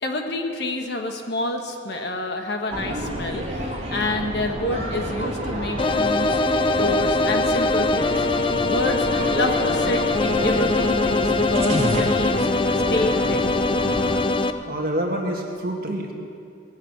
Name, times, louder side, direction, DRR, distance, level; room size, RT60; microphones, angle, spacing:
voice 1, 0.0-8.2 8.6-12.5 12.9-13.4, left 1 dB, 55° left, 4 dB, 1.3 m, -28 dB
sound 1, 2.7-14.2, equal, 30° right, 2.2 m, -29 dB
sound 2, 5.8-14.5, left 3 dB, 25° left, 0.5 m, -22 dB
voice 2, 14.7-16.1, right 1 dB, 50° right, 1 dB, 1.9 m, -27 dB
19.0 x 7.3 x 8.0 m, 2.4 s
head